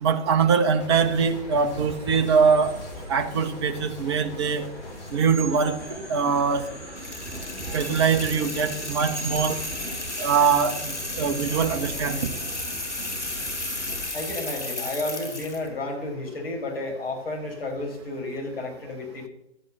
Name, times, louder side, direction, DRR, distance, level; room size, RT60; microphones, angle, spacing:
voice 1, 0.0-2.7 3.1-4.6 5.1-6.7 7.7-9.6 10.2-12.3, right 6 dB, 25° right, 7 dB, 0.9 m, -23 dB
sound 1, 0.8-5.2, left 2 dB, 35° left, 5.3 m, -40 dB
sound 2, 1.9-14.1, right 1 dB, 5° left, 5.7 m, -39 dB
sound 3, 7.0-15.7, left 2 dB, 80° left, 5.0 m, -34 dB
voice 2, 14.1-19.3, left 2 dB, 55° left, -1 dB, 5.4 m, -32 dB
13.0 x 9.0 x 7.2 m, 0.84 s
figure-of-eight pair, 135°, 34 cm